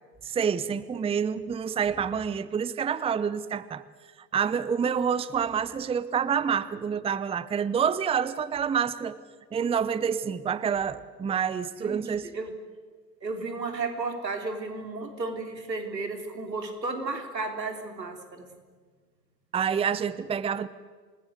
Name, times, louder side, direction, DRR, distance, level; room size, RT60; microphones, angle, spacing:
voice 1, 0.2-3.8 4.3-9.2 9.5-12.3 19.5-20.7, right 7 dB, 10° right, 17 dB, 0.8 m, -27 dB
voice 2, 11.7-12.5 13.2-18.5, right 3 dB, 85° right, 6 dB, 3.7 m, -33 dB
27.5 x 20.0 x 8.1 m, 1.5 s
figure-of-eight pair, 90°, 49 cm